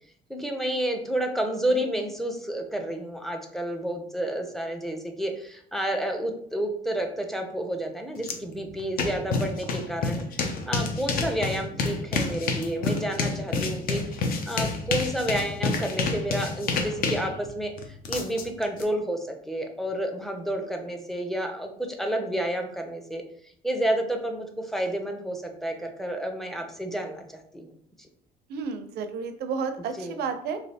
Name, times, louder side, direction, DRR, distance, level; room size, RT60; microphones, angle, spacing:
voice 1, 0.3-17.7 18.1-23.2 23.6-27.2 27.5-27.7 30.0-30.2, right 1 dB, ahead, 4 dB, 0.5 m, -30 dB
sound 1, 8.2-8.3 8.7-18.8, left 4 dB, 60° left, 0.6 m, -29 dB
voice 2, 28.5-30.6, right 5 dB, 70° right, 8 dB, 0.5 m, -31 dB
3.2 x 2.7 x 2.7 m, 0.66 s
cardioid pair, 110°, 17 cm